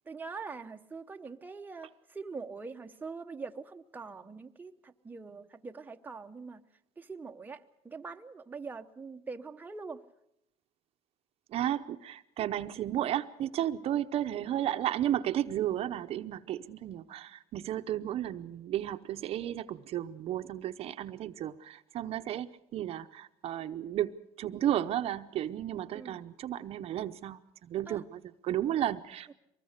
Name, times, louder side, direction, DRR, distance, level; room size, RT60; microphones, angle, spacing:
voice 1, 0.1-6.6 7.0-10.0 25.9-26.2 27.9-28.0 29.3-29.4, right 4 dB, 15° right, 5 dB, 0.9 m, -43 dB
voice 2, 11.5-29.3, right 11 dB, 50° right, 10 dB, 0.8 m, -33 dB
24.0 x 20.0 x 6.6 m, 0.81 s
cardioid pair, 120°, 13 cm